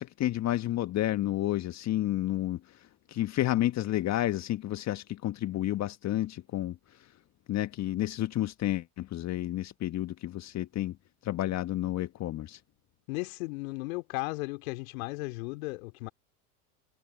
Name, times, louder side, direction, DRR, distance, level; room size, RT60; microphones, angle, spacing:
voice 1, 0.0-7.1 7.5-11.0 11.2-12.6, left 14 dB, 35° left, 1.5 m, -31 dB
voice 2, 13.1-16.1, left 25 dB, 60° left, 2.8 m, -35 dB
hypercardioid pair, 85°, 46 cm